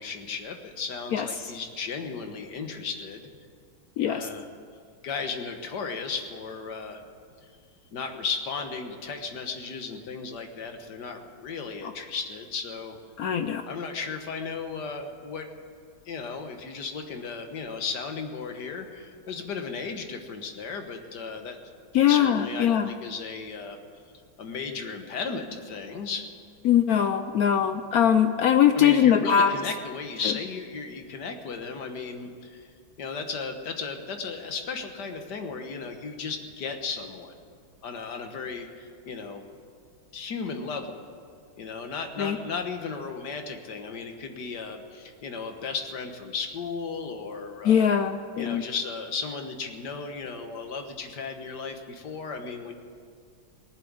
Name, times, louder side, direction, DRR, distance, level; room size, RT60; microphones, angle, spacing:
voice 1, 0.0-3.2 4.1-4.5 5.0-7.0 7.9-13.0 13.7-15.5 16.0-21.6 22.1-23.8 24.4-26.3 28.7-32.7 33.0-37.3 37.8-39.4 40.1-41.0 41.6-47.9 48.4-52.7, left 5 dB, 60° left, 5 dB, 1.8 m, -35 dB
voice 2, 1.1-1.5 4.0-4.3 13.2-13.6 21.9-22.9 26.6-29.5 30.2-30.3 42.2-42.4 47.6-48.6, left 9 dB, 75° left, 9 dB, 0.8 m, -22 dB
19.5 x 7.7 x 9.6 m, 2.1 s
omnidirectional pair, 2.2 m